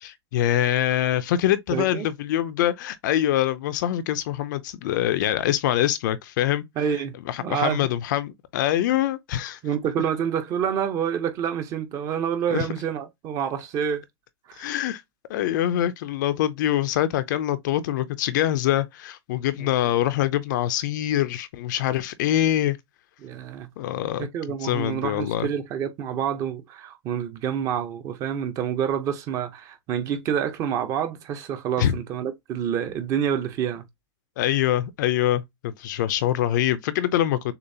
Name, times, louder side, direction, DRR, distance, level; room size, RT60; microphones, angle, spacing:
voice 1, 0.0-6.6 7.3-9.6 12.5-12.7 14.6-15.0 15.3-22.8 23.8-24.3 24.6-25.5 31.8-31.9 34.4-37.5, left 12 dB, 45° left, 0.5 m, -24 dB
voice 2, 1.7-2.1 6.8-7.1 7.4-7.9 9.6-14.0 14.5-14.7 19.6-19.7 23.2-23.7 24.2-33.8, right 8 dB, 20° right, 0.7 m, -28 dB
6.6 x 2.4 x 2.7 m
hypercardioid pair, 160°, 14 cm